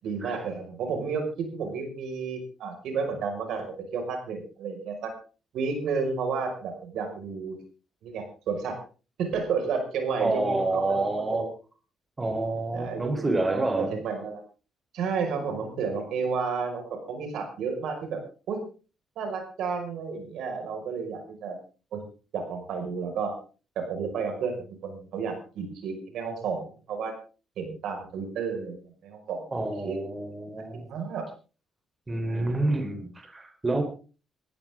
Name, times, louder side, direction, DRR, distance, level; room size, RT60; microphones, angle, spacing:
voice 1, 0.0-5.1 5.5-7.6 8.0-8.8 9.2-11.5 12.7-14.4 14.9-18.2 18.5-18.6 19.2-21.6 21.9-22.0 22.3-23.4 23.8-27.2 27.6-29.4 29.8-30.0 30.6-31.3 32.3-32.6, right 5 dB, 80° right, 5 dB, 5.6 m, -32 dB
voice 2, 10.2-11.5 12.2-14.0 29.5-30.9 32.1-33.8, right 2 dB, 25° right, 5 dB, 4.0 m, -28 dB
19.5 x 15.5 x 3.8 m, 0.36 s
cardioid pair, 90°, 0 cm